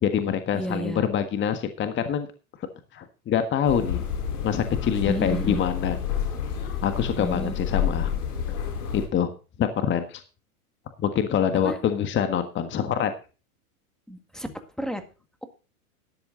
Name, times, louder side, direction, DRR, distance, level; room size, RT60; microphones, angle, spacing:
voice 1, 0.0-2.3 2.9-4.0 4.4-6.0 6.8-8.1 8.9-9.3 9.6-10.2 11.0-13.1, left 8 dB, 25° left, 8 dB, 1.6 m, -25 dB
voice 2, 0.5-1.0 5.1-5.6 7.2-7.5 11.6-11.8 14.1-14.5 14.8-15.0, right 1 dB, ahead, 7 dB, 1.9 m, -31 dB
sound 1, 3.6-9.1, left 8 dB, 85° left, 4.3 m, -29 dB
13.0 x 10.5 x 3.9 m, 0.33 s
hypercardioid pair, 120°, 44 cm